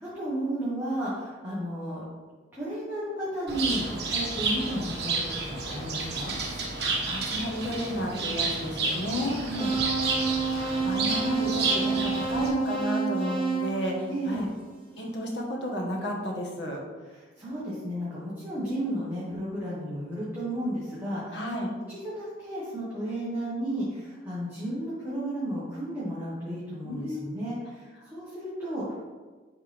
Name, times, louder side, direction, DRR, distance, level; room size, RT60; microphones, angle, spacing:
voice 1, 0.0-2.0 2.5-6.4 9.3-9.7 14.1-14.5 17.1-21.4 21.9-29.1, right 1 dB, 10° right, -10 dB, 1.4 m, -33 dB
Bird, 3.5-12.5, right 3 dB, 55° right, 1.5 m, -31 dB
voice 2, 6.8-9.4 10.5-14.5 15.0-16.8 21.3-21.7 26.8-27.2, equal, 70° left, -1 dB, 1.4 m, -32 dB
sound 1, 9.6-14.7, right 4 dB, 30° right, 1.1 m, -29 dB
10.5 x 3.6 x 3.5 m, 1.4 s
head